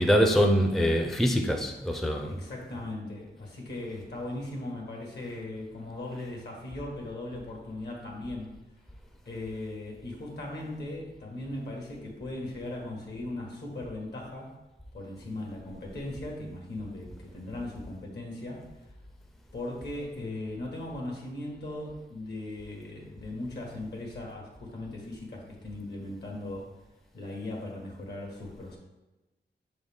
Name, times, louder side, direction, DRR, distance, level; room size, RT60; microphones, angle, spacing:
voice 1, 0.0-2.4, equal, ahead, 3 dB, 0.4 m, -24 dB
voice 2, 2.2-8.5 9.3-14.5 14.9-18.6 19.5-26.7 27.1-28.8, left 2 dB, 70° left, -1 dB, 1.7 m, -38 dB
6.9 x 3.9 x 3.6 m, 1.1 s
wide cardioid pair, 140°, 18 cm